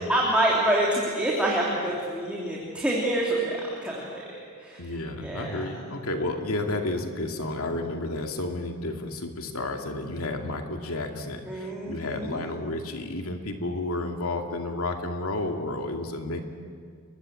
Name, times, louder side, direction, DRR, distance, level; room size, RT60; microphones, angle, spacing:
voice 1, 0.0-4.2 4.6-4.8 5.2-5.6 11.5-12.4, right 1 dB, 5° right, -4 dB, 3.3 m, -26 dB
voice 2, 4.8-16.4, left 2 dB, 85° left, 4 dB, 2.5 m, -31 dB
29.5 x 22.0 x 7.8 m, 2.1 s
head